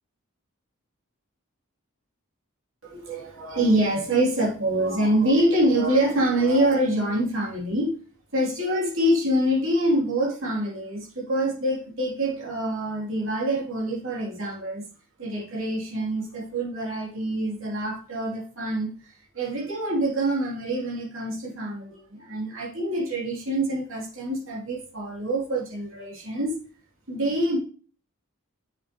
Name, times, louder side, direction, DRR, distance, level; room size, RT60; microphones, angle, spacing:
voice 1, 2.8-7.9 8.3-14.8 15.2-26.5 27.1-27.6, right 1 dB, 70° right, -3 dB, 2.9 m, -25 dB
7.4 x 6.6 x 3.0 m, 0.40 s
head